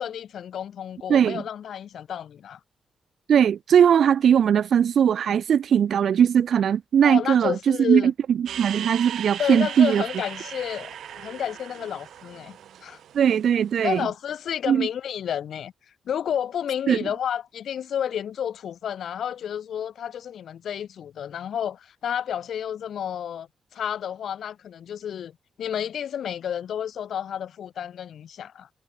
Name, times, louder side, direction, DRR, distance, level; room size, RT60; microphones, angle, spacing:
voice 1, 0.0-2.6 7.0-8.1 9.4-13.0 13.8-15.7 16.1-25.3 25.6-28.7, left 9 dB, 70° left, 0.6 m, -31 dB
voice 2, 1.1-1.4 3.3-8.1 8.6-10.0 13.1-14.0 14.7-14.9 16.9-17.0, right 8 dB, 65° right, 0.5 m, -19 dB
sound 1, 8.5-13.9, right 10 dB, 80° right, 1.3 m, -38 dB
wide cardioid pair, 130°, 0 cm